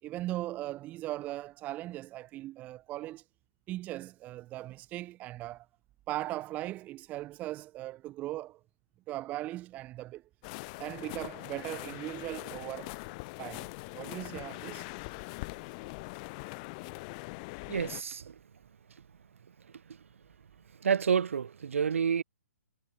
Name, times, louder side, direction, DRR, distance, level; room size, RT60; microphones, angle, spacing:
voice 1, 0.0-3.2 3.7-5.7 6.1-8.6 9.1-10.2 10.8-12.9 13.4-14.9, right 16 dB, 20° right, 1.0 m, -39 dB
sound 1, 10.4-18.0, left 28 dB, 30° left, 2.7 m, -42 dB
voice 2, 17.7-18.3 20.8-22.2, right 7 dB, 55° right, 2.3 m, -29 dB
figure-of-eight pair, 125°, 8 cm